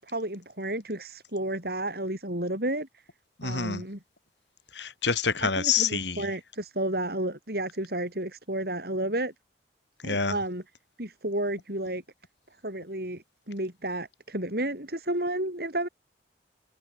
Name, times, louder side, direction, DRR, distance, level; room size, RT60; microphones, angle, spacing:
voice 1, 0.0-3.0 3.4-4.0 5.4-9.3 10.0-10.6 11.0-12.0 12.6-15.9, right 1 dB, 55° right, 7.1 m, -32 dB
voice 2, 3.4-3.8 4.7-6.3 10.0-10.4, left 6 dB, 75° left, 3.8 m, -27 dB
head